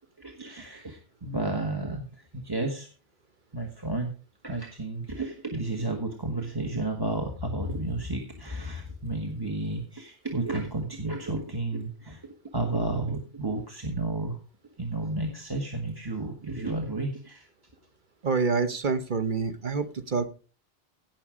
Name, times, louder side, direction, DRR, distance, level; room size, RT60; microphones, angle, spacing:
voice 1, 0.2-2.9 3.5-4.1 4.4-12.2 12.5-14.4 14.8-17.5, right 2 dB, 20° right, 5 dB, 1.5 m, -32 dB
voice 2, 18.2-20.3, right 4 dB, 50° right, 9 dB, 1.3 m, -27 dB
17.0 x 6.1 x 5.0 m, 0.36 s
omnidirectional pair, 1.1 m